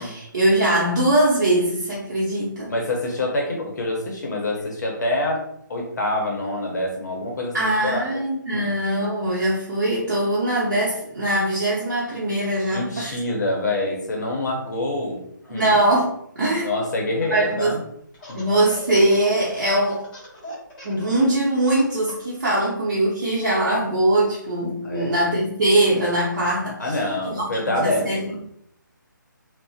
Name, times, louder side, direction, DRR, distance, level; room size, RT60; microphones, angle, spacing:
voice 1, 0.0-2.7 7.5-13.2 15.5-16.7 17.3-17.7 18.3-20.0 20.8-27.0 27.3-28.3, right 1 dB, 55° right, -7 dB, 0.7 m, -22 dB
voice 2, 2.7-5.4 5.7-8.1 8.5-8.7 12.7-15.7 16.6-17.8 18.3-18.4 24.8-25.2 26.8-28.4, left 2 dB, 55° left, 0 dB, 0.7 m, -26 dB
Laughter, 17.1-17.7 18.1-22.4, left 3 dB, 25° left, 1.0 m, -38 dB
2.5 x 2.1 x 2.4 m, 0.72 s
figure-of-eight pair, 150°, 11 cm